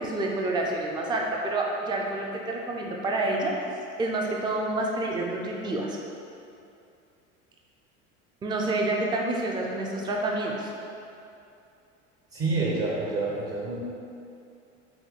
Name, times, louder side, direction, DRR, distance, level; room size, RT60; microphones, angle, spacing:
voice 1, 0.0-3.5 4.0-6.0 8.4-10.7, right 2 dB, 10° right, -1 dB, 0.4 m, -28 dB
voice 2, 12.3-13.8, right 3 dB, 40° right, -4 dB, 0.8 m, -28 dB
5.6 x 2.2 x 3.6 m, 2.6 s
hypercardioid pair, 85°, 37 cm